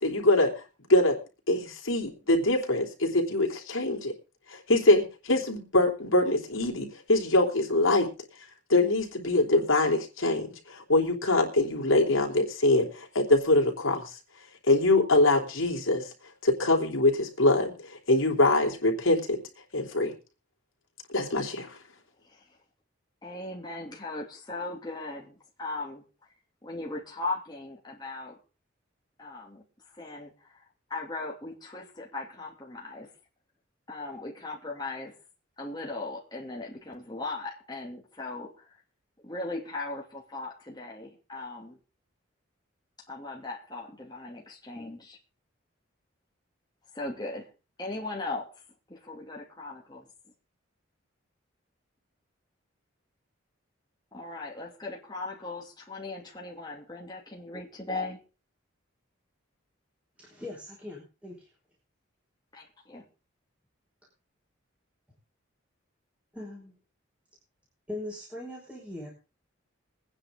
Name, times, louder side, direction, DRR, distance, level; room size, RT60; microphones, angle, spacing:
voice 1, 0.0-0.6 0.9-1.2 1.5-4.1 4.5-8.1 8.7-14.1 14.7-16.1 16.4-19.4 19.7-20.1 21.1-21.8, left 2 dB, 80° left, 2 dB, 3.4 m, -24 dB
voice 2, 22.2-22.6 23.2-26.0 26.6-28.4 29.2-29.6 29.9-30.6 30.9-33.1 33.9-35.1 35.6-38.8 39.2-41.8 43.1-45.2 46.9-47.5 47.8-48.6 48.9-50.1 54.1-58.2 62.5-63.0, left 2 dB, 20° left, -2 dB, 2.7 m, -38 dB
voice 3, 60.2-61.5 66.3-66.7 67.9-69.1, left 1 dB, 5° right, -4 dB, 5.3 m, -40 dB
23.0 x 9.8 x 3.8 m, 0.32 s
head